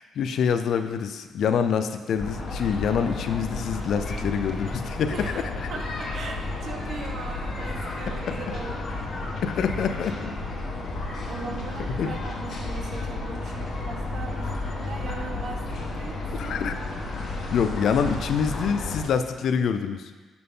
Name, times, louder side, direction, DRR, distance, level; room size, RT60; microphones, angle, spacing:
voice 1, 0.0-5.3 8.3-8.4 9.4-10.3 11.8-12.1 16.3-16.7 17.5-20.1, left 7 dB, 70° left, 9 dB, 0.5 m, -26 dB
sound 1, 2.2-19.0, left 2 dB, 55° left, 1.7 m, -32 dB
voice 2, 5.1-5.4 5.7-9.4 9.9-10.0 11.3-16.5, right 4 dB, 60° right, 3 dB, 1.1 m, -39 dB
9.5 x 5.9 x 3.8 m, 1.3 s
cardioid pair, 90°, 0 cm